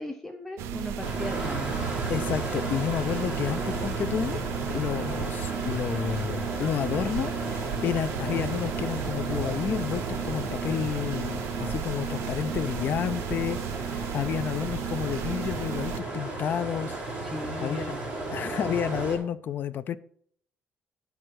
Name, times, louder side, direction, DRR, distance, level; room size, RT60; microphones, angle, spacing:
voice 1, 0.0-1.7 17.2-18.0, left 1 dB, 5° left, 4 dB, 0.6 m, -37 dB
sound 1, 0.6-16.0, right 8 dB, 90° right, 0.6 m, -34 dB
sound 2, 1.0-19.2, right 2 dB, 20° right, 3.5 m, -34 dB
voice 2, 2.1-4.4 4.7-17.0 17.6-17.9 18.3-20.0, left 9 dB, 45° left, 14 dB, 0.4 m, -30 dB
11.0 x 4.7 x 6.2 m, 0.63 s
cardioid pair, 135°, 5 cm